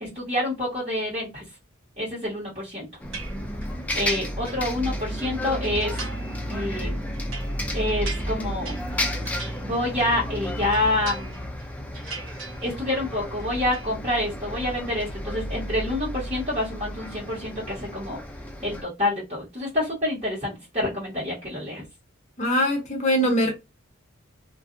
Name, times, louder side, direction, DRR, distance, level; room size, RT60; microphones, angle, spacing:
voice 1, 0.0-1.4 2.0-2.9 3.9-6.0 6.5-7.1 7.7-8.8 9.6-11.4 12.6-18.2 18.6-21.8, left 1 dB, 30° right, 1.3 m, -27 dB
Bus, 3.0-18.8, equal, 5° left, 0.3 m, -32 dB
sound 1, 3.1-3.8 4.2-5.3 5.8-6.4 6.7-10.3 10.6-11.6 11.9-13.0 13.3-13.9, right 4 dB, 70° right, 0.9 m, -41 dB
voice 2, 22.4-23.5, equal, 35° left, 0.7 m, -22 dB
2.5 x 2.3 x 2.5 m
head